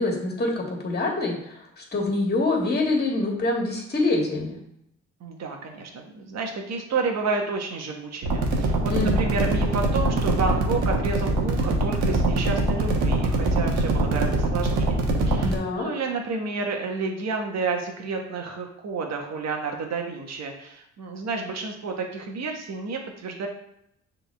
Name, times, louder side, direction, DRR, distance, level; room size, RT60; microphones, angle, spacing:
voice 1, 0.0-4.6 8.9-9.2 15.4-15.9, left 2 dB, 30° left, -1 dB, 2.0 m, -25 dB
voice 2, 5.2-8.9 9.2-15.0 15.2-23.5, right 4 dB, 60° right, 2 dB, 1.4 m, -30 dB
sound 1, 8.2-15.6, right 1 dB, 85° right, 1.3 m, -23 dB
7.1 x 3.8 x 3.5 m, 0.75 s
cardioid pair, 90°, 30 cm